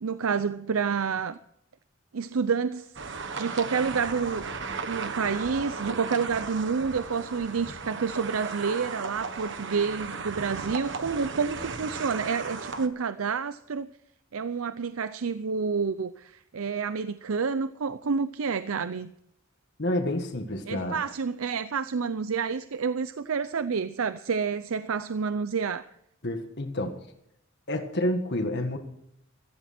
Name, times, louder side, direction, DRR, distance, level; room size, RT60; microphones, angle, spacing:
voice 1, 0.0-1.4 2.1-2.9 3.3-4.5 4.9-13.9 14.3-19.1 20.7-25.9, right 5 dB, 85° right, 0.6 m, -29 dB
sound 1, 3.0-12.9, right 4 dB, 60° right, 1.3 m, -36 dB
voice 2, 19.8-21.0 26.2-26.9 27.7-28.8, left 1 dB, 55° left, 1.7 m, -29 dB
15.5 x 15.0 x 4.3 m
head